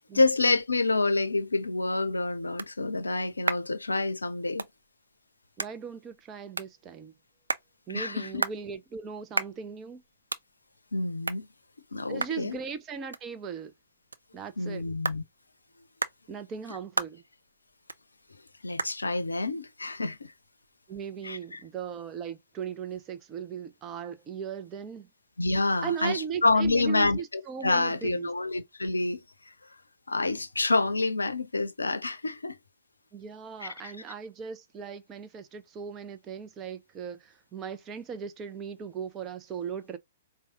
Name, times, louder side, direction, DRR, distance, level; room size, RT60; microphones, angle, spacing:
voice 1, 0.1-4.7 7.9-8.4 10.9-11.5 11.9-12.6 14.6-15.2 18.6-20.3 21.2-21.6 25.4-29.2 30.1-32.6 33.6-33.9, left 3 dB, 80° left, 0.5 m, -28 dB
sound 1, 1.7-21.0, right 3 dB, 80° right, 0.4 m, -39 dB
voice 2, 5.6-7.1 7.9-10.0 12.1-13.7 14.3-14.9 16.3-17.2 20.9-25.1 25.8-28.3 33.1-40.0, right 7 dB, 25° right, 0.6 m, -38 dB
4.6 x 2.2 x 2.8 m
figure-of-eight pair, 115°, 0 cm